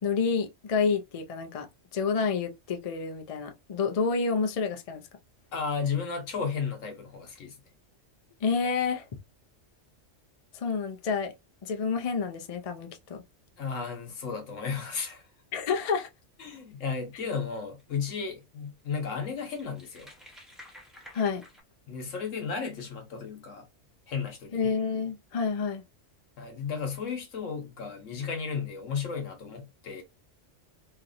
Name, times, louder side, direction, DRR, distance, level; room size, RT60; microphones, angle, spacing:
voice 1, 0.0-5.0 8.4-9.1 10.5-11.3 11.6-13.2 15.5-16.1 21.1-21.4 24.5-25.8, left 5 dB, 65° left, 0.3 m, -29 dB
voice 2, 5.5-7.6 13.6-15.2 16.4-20.1 21.9-23.7 24.1-24.6 26.4-30.0, left 6 dB, 85° left, 1.3 m, -34 dB
sound 1, 17.6-17.8 18.4-18.5 18.8-21.6, left 1 dB, ahead, 0.6 m, -52 dB
2.9 x 2.6 x 2.5 m
omnidirectional pair, 1.3 m